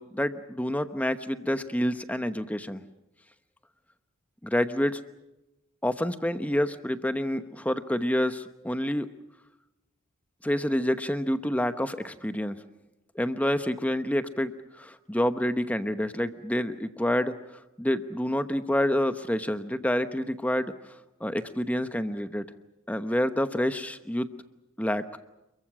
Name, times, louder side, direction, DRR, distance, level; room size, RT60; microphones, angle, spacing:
voice 1, 0.0-2.8 4.4-5.0 5.8-9.1 10.4-12.6 13.1-20.7 21.2-22.4 22.9-24.3 24.8-25.2, equal, 5° left, 10 dB, 0.9 m, -28 dB
28.0 x 22.5 x 6.2 m, 0.98 s
head